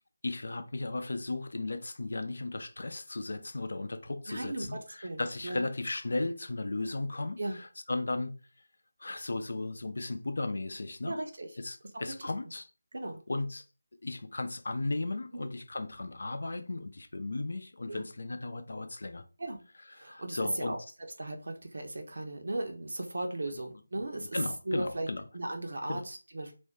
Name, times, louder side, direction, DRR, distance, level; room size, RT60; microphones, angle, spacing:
voice 1, 0.2-8.3 9.0-11.2 11.6-12.7 13.3-13.6 14.0-19.2 19.9-20.7 23.5-23.6 24.2-25.2 25.9-26.0, left 2 dB, 65° left, 0.4 m, -35 dB
voice 2, 4.3-5.6 7.4-7.6 11.0-11.5 11.9-12.0 12.9-13.2 15.3-15.5 17.9-18.0 19.4-19.6 20.0-20.8 21.2-24.4 24.7-25.1 25.3-26.5, right 1 dB, 70° right, 0.7 m, -36 dB
2.5 x 2.2 x 3.5 m
figure-of-eight pair, 160°, 0 cm